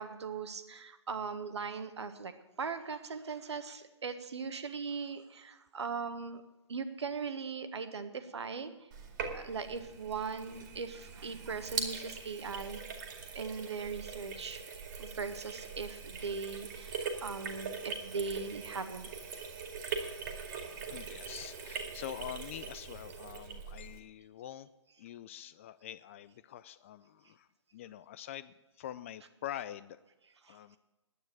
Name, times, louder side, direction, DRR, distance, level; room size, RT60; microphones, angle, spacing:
voice 1, 0.0-2.3 2.6-6.4 6.7-8.7 9.3-12.8 13.3-14.6 15.0-19.1 30.4-30.6, right 5 dB, 65° right, 10 dB, 1.4 m, -39 dB
Sink (filling or washing), 8.9-24.0, right 5 dB, 40° right, 2.1 m, -42 dB
voice 2, 19.7-20.1 20.9-24.7 25.0-30.0 30.5-30.8, left 11 dB, 25° left, 15 dB, 0.4 m, -45 dB
9.6 x 9.4 x 9.0 m, 1.1 s
figure-of-eight pair, 135°, 16 cm